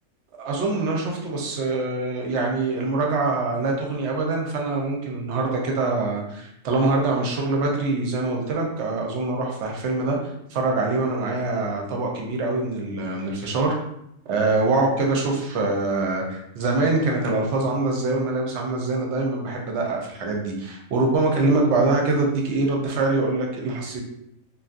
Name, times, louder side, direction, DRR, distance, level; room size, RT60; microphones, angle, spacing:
voice 1, 0.4-10.2 10.5-13.8 14.3-24.0, right 3 dB, 65° right, 0 dB, 0.8 m, -24 dB
2.6 x 2.3 x 2.4 m, 0.79 s
omnidirectional pair, 1.4 m